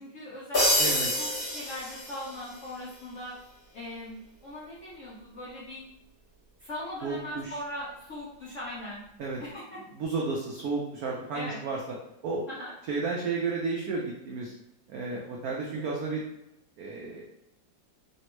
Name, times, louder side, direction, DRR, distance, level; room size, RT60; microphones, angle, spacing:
voice 1, 0.0-3.3 3.7-5.8 6.6-9.0 9.4-9.8 11.3-11.6 12.5-12.7, left 1 dB, 70° left, -8 dB, 0.7 m, -40 dB
sound 1, 0.5-2.6, left 1 dB, 40° left, 0.9 m, -27 dB
voice 2, 0.8-1.1 7.0-7.5 9.2-9.4 10.0-11.8 12.2-12.4 12.9-14.5 14.9-16.2 16.8-17.2, right 4 dB, 85° right, -3 dB, 0.8 m, -32 dB
3.4 x 2.2 x 2.9 m, 0.87 s
omnidirectional pair, 2.1 m